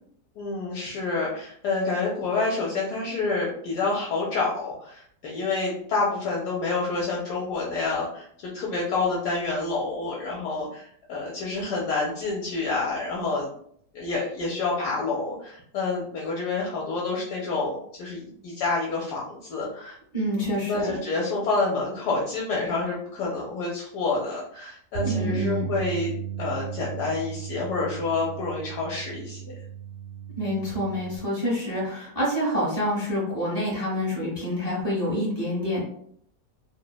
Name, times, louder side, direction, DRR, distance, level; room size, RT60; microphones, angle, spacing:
voice 1, 0.4-13.5 13.9-19.9 20.7-26.1 26.4-29.4, left 3 dB, 75° left, -4 dB, 1.1 m, -28 dB
voice 2, 20.1-21.0 25.0-25.7 30.4-35.8, equal, 30° left, -5 dB, 0.9 m, -27 dB
Bass guitar, 24.9-31.2, right 9 dB, 75° right, 1.1 m, -35 dB
2.9 x 2.0 x 2.2 m, 0.66 s
omnidirectional pair, 1.8 m